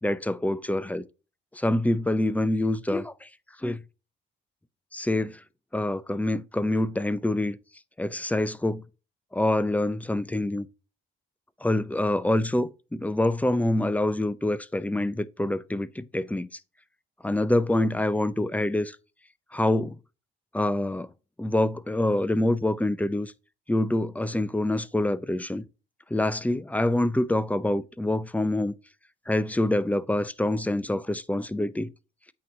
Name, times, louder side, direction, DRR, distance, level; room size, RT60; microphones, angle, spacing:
voice 1, 0.0-1.0 1.5-3.3 3.6-3.8 4.9-5.4 5.7-7.6 8.0-8.8 9.3-10.7 11.6-16.6 17.2-19.0 19.5-20.0 20.5-21.1 21.4-23.3 23.7-25.6 26.1-28.7 29.3-31.9, left 1 dB, 5° left, 0.5 m, -26 dB
8.5 x 3.1 x 5.4 m
cardioid pair, 90°, 20 cm